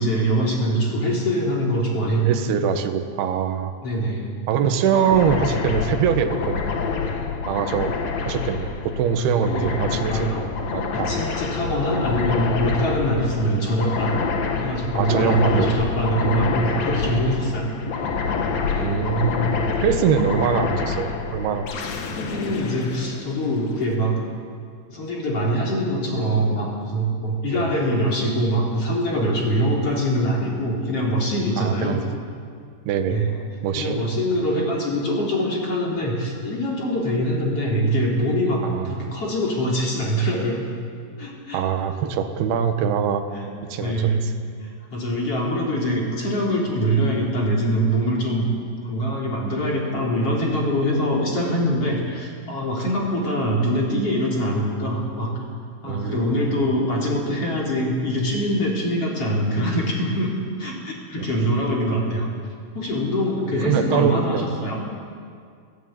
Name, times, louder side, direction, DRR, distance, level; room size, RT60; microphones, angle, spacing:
voice 1, 0.0-2.3 3.8-4.3 9.5-10.5 10.9-17.7 21.8-21.9 22.1-24.2 24.9-32.0 33.1-33.4 33.8-40.6 41.2-41.6 43.3-43.5 43.7-44.3 44.6-48.5 48.8-55.3 55.8-60.3 60.6-62.3 62.7-64.8, equal, 30° left, -3 dB, 4.2 m, -23 dB
voice 2, 2.3-3.7 4.5-6.6 7.5-8.0 8.2-10.3 10.7-11.1 11.8-11.9 14.9-16.3 18.8-19.5 19.8-21.7 27.5-27.6 31.6-32.0 32.9-33.2 33.6-34.0 38.6-39.1 41.5-43.3 43.7-44.3 55.8-56.5 63.6-64.4, right 7 dB, 65° right, 6 dB, 2.8 m, -23 dB
sound 1, 4.9-23.8, left 5 dB, 75° left, 1.5 m, -27 dB
26.0 x 16.0 x 9.3 m, 2.2 s
omnidirectional pair, 5.8 m